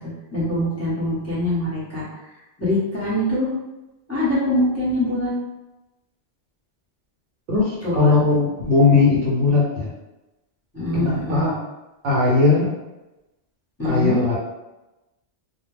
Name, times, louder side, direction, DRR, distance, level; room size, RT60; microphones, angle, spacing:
voice 1, 0.0-2.0 2.6-3.5 4.1-5.3 7.8-8.1 10.7-11.6 13.8-14.2, left 1 dB, 15° left, -10 dB, 1.0 m, -23 dB
voice 2, 7.5-9.9 10.9-11.5 12.0-12.7 13.8-14.4, left 3 dB, 60° right, -3 dB, 0.8 m, -18 dB
2.3 x 2.2 x 3.2 m, 1.0 s
omnidirectional pair, 1.2 m